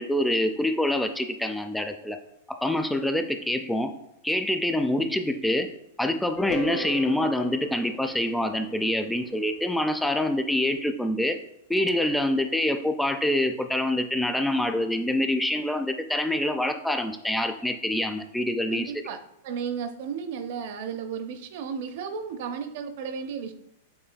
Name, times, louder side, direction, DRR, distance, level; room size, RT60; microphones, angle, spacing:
voice 1, 0.0-2.2 2.5-3.9 4.2-5.7 6.0-11.4 11.7-18.9, left 1 dB, 5° left, 7 dB, 0.3 m, -26 dB
sound 1, 6.4-10.5, equal, 45° left, 0.6 m, -38 dB
voice 2, 18.7-23.5, right 6 dB, 60° right, 7 dB, 0.6 m, -34 dB
6.7 x 3.2 x 2.2 m, 0.77 s
hypercardioid pair, 120°, 0 cm